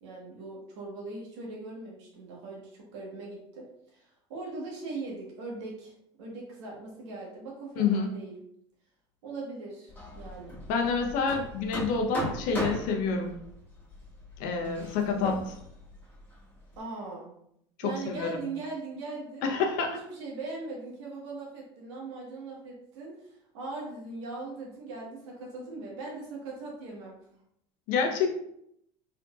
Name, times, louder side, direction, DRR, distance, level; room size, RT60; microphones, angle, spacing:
voice 1, 0.0-3.7 3.9-5.9 6.2-8.3 9.2-10.6 16.8-17.3 17.8-19.5 19.9-27.2, right 3 dB, 80° right, -2 dB, 1.4 m, -40 dB
voice 2, 7.8-8.1 10.7-13.4 14.4-15.5 17.8-18.4 19.4-19.9 27.9-28.3, left 5 dB, 65° left, 3 dB, 0.8 m, -28 dB
Hammer, 9.9-16.8, equal, 15° left, 1.4 m, -39 dB
3.7 x 3.5 x 2.4 m, 0.75 s
supercardioid pair, 90°, 15 cm